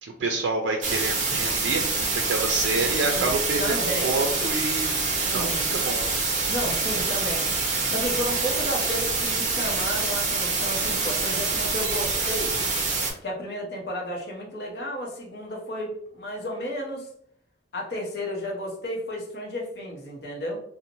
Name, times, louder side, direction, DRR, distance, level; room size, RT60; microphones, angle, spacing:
voice 1, 0.0-3.8 4.0-4.9 5.3-6.1, right 3 dB, 85° right, 3 dB, 0.3 m, -28 dB
sound 1, 0.8-13.1, right 4 dB, 40° right, 0.6 m, -26 dB
voice 2, 3.0-3.3 3.6-4.2 5.2-5.8 6.5-7.4 7.9-12.5 13.2-17.1 17.7-20.6, equal, 60° left, 0 dB, 0.7 m, -32 dB
2.6 x 2.0 x 2.8 m, 0.69 s
head